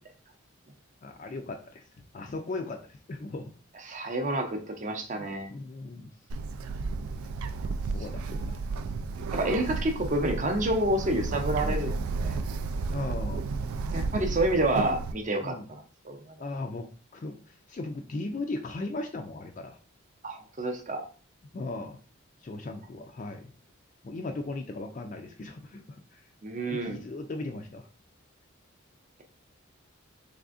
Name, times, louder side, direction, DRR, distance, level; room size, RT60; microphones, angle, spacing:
voice 1, 1.0-1.8 2.1-3.5 5.1-6.1 7.9-8.6 11.6-11.8 12.9-13.5 15.4-15.7 16.4-16.9 17.1-19.8 21.5-22.0 22.4-23.5 24.0-26.2 26.7-27.9, left 2 dB, 35° left, 4 dB, 0.3 m, -37 dB
voice 2, 3.9-5.5 9.3-12.4 13.9-16.2 20.2-21.0 26.4-27.0, right 1 dB, 35° right, 4 dB, 0.6 m, -29 dB
Bird, 6.3-15.1, right 4 dB, 85° right, 0.3 m, -32 dB
3.5 x 3.3 x 2.4 m, 0.38 s
head